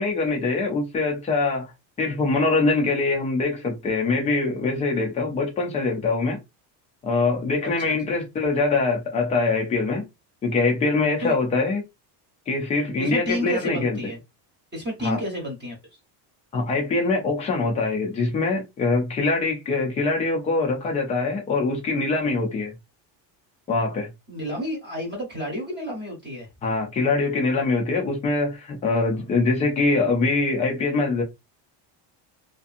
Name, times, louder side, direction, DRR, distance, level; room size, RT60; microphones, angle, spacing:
voice 1, 0.0-1.7 2.0-6.4 7.0-10.0 10.4-11.8 12.5-14.0 15.0-15.2 16.5-22.7 23.7-24.1 26.6-31.2, left 3 dB, 15° left, 0.3 m, -23 dB
voice 2, 13.0-14.2 14.7-15.8 24.3-26.5, equal, 20° right, 0.8 m, -30 dB
2.6 x 2.5 x 2.5 m
cardioid pair, 170°, 49 cm